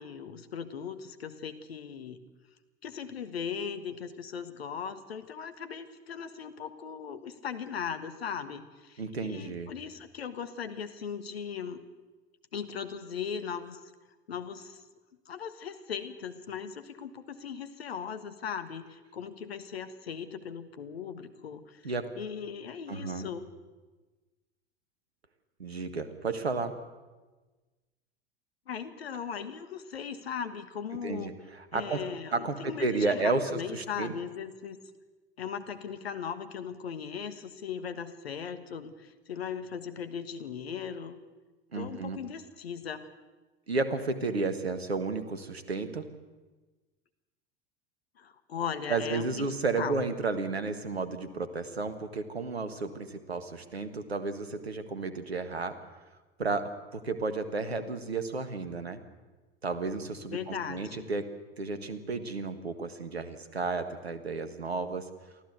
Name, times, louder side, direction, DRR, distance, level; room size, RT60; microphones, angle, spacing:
voice 1, 0.0-2.2 2.8-11.8 12.5-13.8 14.3-14.8 15.3-23.5 28.7-31.3 31.7-34.8 35.4-41.2 41.7-43.1 48.2-49.5 49.8-50.0 60.3-61.1, left 7 dB, 80° left, 10 dB, 1.5 m, -38 dB
voice 2, 9.0-9.7 21.8-22.1 22.9-23.3 25.6-26.8 31.0-32.0 32.3-34.1 41.7-42.2 43.7-46.1 48.9-55.8 56.4-59.0 59.6-61.3 61.6-65.1, right 3 dB, 85° right, 10 dB, 1.6 m, -32 dB
23.5 x 15.0 x 8.1 m, 1.2 s
figure-of-eight pair, 75°, 31 cm